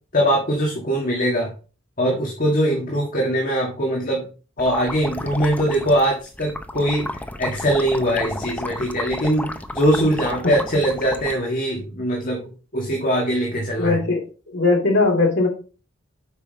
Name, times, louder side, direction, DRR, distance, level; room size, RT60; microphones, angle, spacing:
voice 1, 0.1-1.5 2.0-4.3 4.6-12.5 12.7-14.0, equal, 40° left, -1 dB, 1.8 m, -22 dB
sound 1, 4.6-11.3, left 1 dB, 5° left, 0.6 m, -32 dB
voice 2, 13.8-14.2 14.5-15.5, left 3 dB, 60° left, 1 dB, 2.8 m, -19 dB
8.2 x 5.8 x 4.0 m, 0.36 s
head